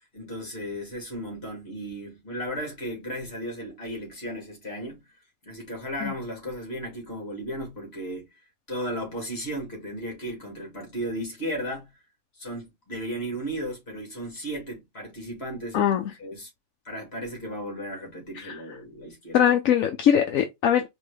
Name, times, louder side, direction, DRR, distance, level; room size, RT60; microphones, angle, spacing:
voice 1, 0.1-5.0 5.4-8.3 8.7-11.9 12.4-16.5 16.8-19.5, equal, 50° left, 2.6 m, -35 dB
voice 2, 15.7-16.0 18.3-18.6 19.3-20.9, left 9 dB, 80° left, 1.1 m, -22 dB
4.6 x 3.1 x 3.3 m
omnidirectional pair, 1.4 m